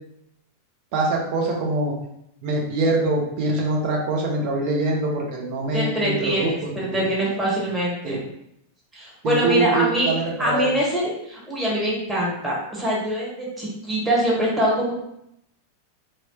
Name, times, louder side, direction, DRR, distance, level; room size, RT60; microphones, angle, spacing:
voice 1, 0.9-1.9 2.4-7.1 8.0-8.2 9.2-10.7, right 2 dB, 45° right, -1 dB, 0.8 m, -24 dB
voice 2, 5.7-8.2 8.9-10.1 10.4-14.9, right 1 dB, 10° right, -6 dB, 1.3 m, -24 dB
3.0 x 3.0 x 2.9 m, 0.78 s
figure-of-eight pair, 90°, 0 cm